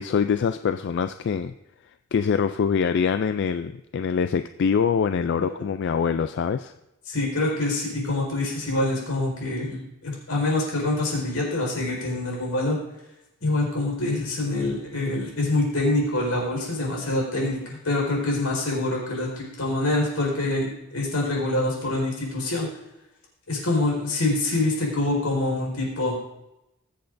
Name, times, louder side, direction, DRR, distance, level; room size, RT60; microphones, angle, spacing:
voice 1, 0.0-1.5 2.1-6.7, left 6 dB, 55° left, 10 dB, 0.3 m, -24 dB
voice 2, 7.1-12.8 13.4-22.7 23.5-26.2, left 2 dB, 80° left, -2 dB, 4.5 m, -25 dB
21.0 x 7.9 x 2.6 m, 0.91 s
head